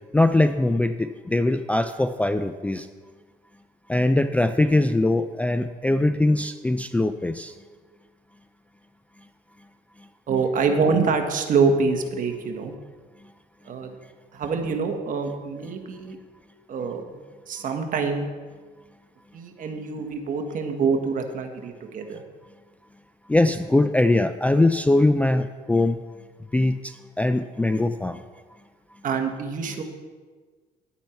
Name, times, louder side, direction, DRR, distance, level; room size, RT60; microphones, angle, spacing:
voice 1, 0.1-2.9 3.9-7.5 23.3-26.0 26.5-28.2, left 2 dB, 10° left, 9 dB, 0.3 m, -21 dB
voice 2, 10.3-12.7 13.6-13.9 14.3-16.2 16.7-17.0 17.5-18.3 19.3-22.2 29.0-29.8, right 5 dB, 50° right, 4 dB, 1.4 m, -25 dB
10.5 x 8.7 x 4.4 m, 1.4 s
cardioid pair, 110°, 17 cm